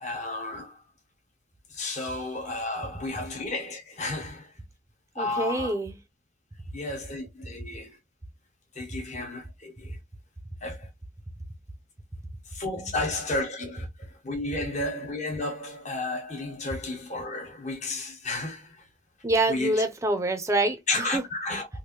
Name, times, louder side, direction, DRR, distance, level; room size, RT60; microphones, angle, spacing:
voice 1, 0.0-0.8 1.7-4.5 5.1-5.7 6.7-8.0 8.7-10.0 10.6-10.9 12.5-18.8 19.5-19.7 20.9-21.7, left 2 dB, 40° left, 1.2 m, -32 dB
voice 2, 5.2-5.9 19.2-21.2, right 2 dB, 15° right, 0.6 m, -26 dB
3.2 x 2.6 x 2.9 m
head